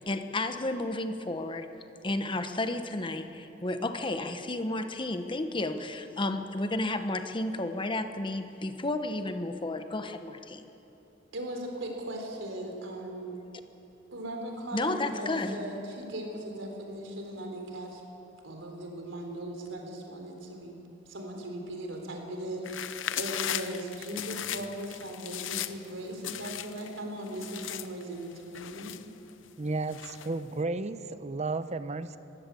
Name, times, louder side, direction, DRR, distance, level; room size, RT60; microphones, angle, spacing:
voice 1, 0.0-1.7 2.0-10.6 14.7-15.6, left 2 dB, 25° left, 8 dB, 1.1 m, -32 dB
voice 2, 11.3-13.3 14.1-18.0 18.4-20.8 21.1-22.9 23.1-28.9, right 1 dB, 85° right, 2 dB, 3.8 m, -38 dB
sound 1, 22.6-25.9 26.2-27.0 27.3-29.5 29.9-30.4, left 10 dB, 80° left, 0.8 m, -37 dB
voice 3, 29.6-32.2, right 3 dB, 35° right, 12 dB, 0.8 m, -33 dB
22.0 x 15.5 x 8.5 m, 2.9 s
head